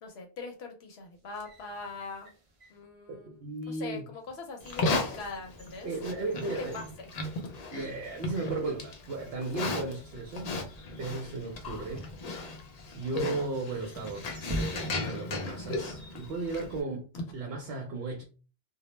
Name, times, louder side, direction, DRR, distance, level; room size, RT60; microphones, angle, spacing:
voice 1, 0.0-2.3 2.7-3.3 3.7-5.9 6.4-7.1, left 4 dB, 75° left, 0.8 m, -41 dB
sound 1, 1.1-2.9 3.5-3.6 4.2-7.9 8.2-8.3 9.2-9.5 11.5-12.9 13.7-15.3 15.5-15.6, equal, 40° right, 0.6 m, -44 dB
voice 2, 3.1-4.0 5.8-6.8 7.7-10.5 11.0-12.1 12.4-12.6 12.9-14.3 14.6-18.2, right 3 dB, 70° right, 0.8 m, -35 dB
Livestock farm animals working animals, 4.6-16.8, left 2 dB, 55° left, 0.5 m, -36 dB
2.2 x 2.0 x 3.0 m
omnidirectional pair, 1.1 m